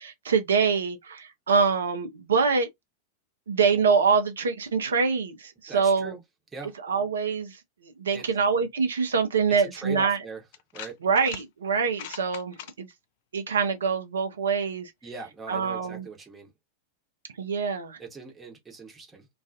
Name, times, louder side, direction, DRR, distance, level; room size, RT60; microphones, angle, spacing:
voice 1, 0.0-2.7 3.5-6.1 6.8-10.2 11.0-12.9 13.3-14.9 15.5-16.1 17.4-18.0, right 5 dB, 65° right, 0.5 m, -25 dB
voice 2, 5.7-6.2 6.5-6.8 8.1-8.4 9.6-10.4 10.7-11.0 15.0-16.5 18.0-19.3, right 4 dB, 15° right, 0.9 m, -40 dB
sound 1, 10.5-11.4 11.8-12.7, left 10 dB, 50° left, 0.4 m, -41 dB
2.3 x 2.3 x 2.5 m
figure-of-eight pair, 90°, 0 cm